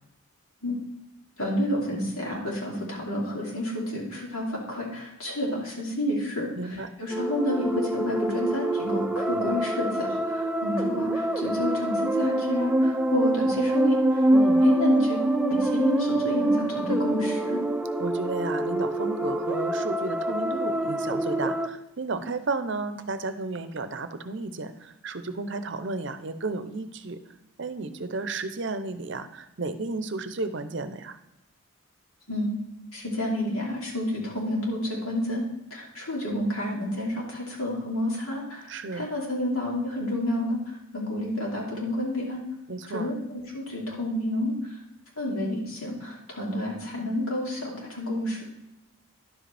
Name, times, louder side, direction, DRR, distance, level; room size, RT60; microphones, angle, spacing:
voice 1, 1.4-14.3 14.6-17.6 32.3-32.5 32.9-35.4 35.7-42.4 42.9-44.5 45.2-48.4, left 1 dB, 85° left, -3 dB, 2.8 m, -30 dB
voice 2, 6.6-6.9 14.3-14.6 18.0-27.2 27.6-31.2 38.7-39.1 42.7-43.1, right 3 dB, 55° right, 10 dB, 0.6 m, -33 dB
sound 1, 7.1-21.7, right 1 dB, 5° right, 0.4 m, -25 dB
10.5 x 7.7 x 3.3 m, 0.92 s
head